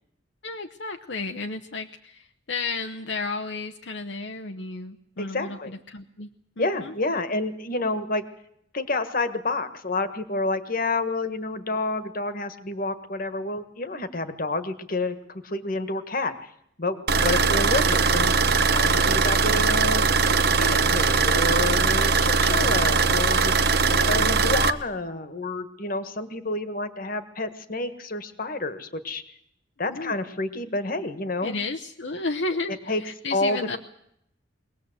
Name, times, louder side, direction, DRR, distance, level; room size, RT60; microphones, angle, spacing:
voice 1, 0.4-6.3 6.6-6.9 17.2-17.6 23.8-24.3 29.9-30.2 31.4-33.8, left 3 dB, 65° left, 5 dB, 0.9 m, -33 dB
voice 2, 5.2-5.7 6.6-8.2 8.7-16.5 16.8-18.3 18.7-20.1 20.6-23.5 24.0-29.2 29.8-31.5 32.7-33.0 33.3-33.8, left 2 dB, 50° left, 11 dB, 1.6 m, -29 dB
sound 1, 17.1-24.7, right 4 dB, 55° right, 0.9 m, -21 dB
22.5 x 18.5 x 8.0 m, 0.74 s
head